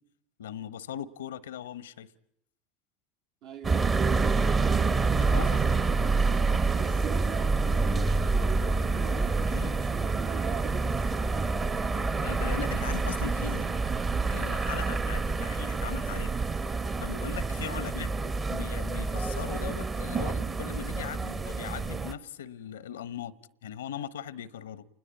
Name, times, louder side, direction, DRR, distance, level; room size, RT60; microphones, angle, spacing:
voice 1, 0.4-2.1 5.1-5.8 9.5-9.7 12.2-13.7 14.3-16.3 17.0-18.1 18.5-23.3 23.6-24.9, left 9 dB, 85° left, 1.0 m, -39 dB
voice 2, 3.4-4.0 5.4-6.5 6.8-11.9 17.6-18.0, right 9 dB, 60° right, 2.1 m, -42 dB
sound 1, 3.6-22.1, right 4 dB, 25° right, 1.3 m, -27 dB
29.0 x 21.0 x 8.4 m
hypercardioid pair, 95°, 0 cm